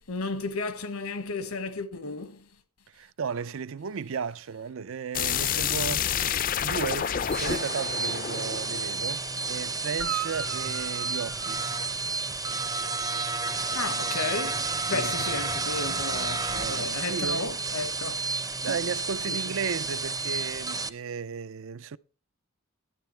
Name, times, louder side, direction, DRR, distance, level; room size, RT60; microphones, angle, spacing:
voice 1, 0.0-2.5 13.5-18.2 18.7-18.8 19.3-19.4, left 3 dB, 80° left, 1.3 m, -33 dB
voice 2, 2.9-11.8 14.8-15.1 16.5-17.5 18.6-22.0, right 6 dB, 60° right, 0.5 m, -35 dB
sound 1, 5.1-9.9, left 8 dB, 40° left, 0.4 m, -29 dB
sound 2, 7.2-20.9, right 3 dB, 15° right, 0.6 m, -31 dB
Guitar, 9.9-12.5 16.4-16.5, right 9 dB, 75° right, 1.4 m, -38 dB
12.5 x 9.6 x 4.4 m
head